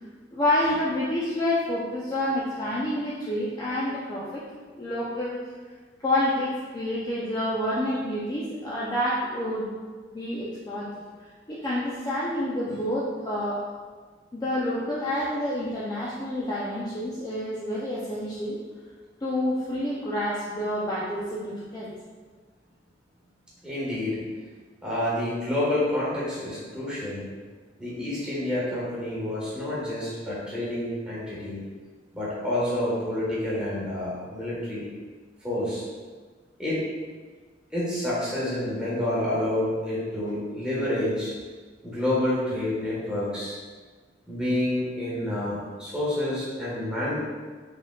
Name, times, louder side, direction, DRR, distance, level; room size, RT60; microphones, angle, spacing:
voice 1, 0.3-4.4 4.8-5.4 6.0-9.7 10.1-10.9 11.5-13.6 14.3-18.6 19.2-21.9, left 1 dB, 20° left, -8 dB, 0.5 m, -28 dB
voice 2, 23.6-24.2 24.8-27.3 27.8-31.6 32.1-34.8 35.4-35.8 36.6-36.8 37.7-41.3 41.8-43.6 44.3-47.2, left 1 dB, 5° right, -9 dB, 1.3 m, -28 dB
4.9 x 3.6 x 2.3 m, 1.5 s
head